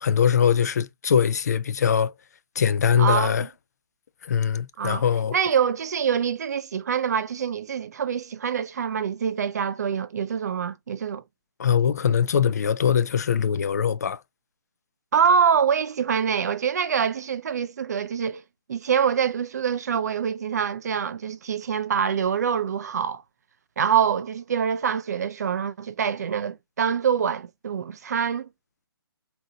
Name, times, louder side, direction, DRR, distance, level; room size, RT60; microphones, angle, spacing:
voice 1, 0.0-2.1 2.6-3.5 4.2-5.3 11.6-14.2, left 7 dB, 40° left, 0.3 m, -22 dB
voice 2, 3.0-3.5 4.8-5.0 5.3-11.2 15.1-18.4 18.7-23.2 23.8-28.5, right 7 dB, 40° right, 0.4 m, -25 dB
4.0 x 2.6 x 3.7 m
hypercardioid pair, 165°, 13 cm